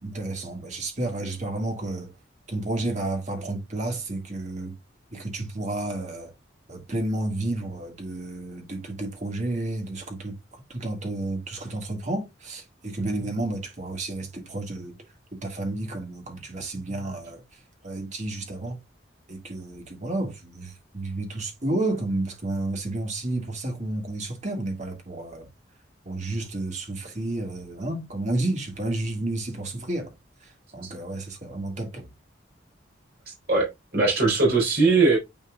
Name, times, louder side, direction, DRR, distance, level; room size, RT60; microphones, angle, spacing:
voice 1, 0.0-2.1 2.5-4.8 5.1-6.3 6.7-15.0 15.3-17.4 17.8-18.8 19.3-25.5 26.1-30.1 30.4-32.1, right 2 dB, 40° right, 1.8 m, -31 dB
voice 2, 33.5-35.2, right 3 dB, 55° right, 4.0 m, -20 dB
9.1 x 4.6 x 2.3 m
head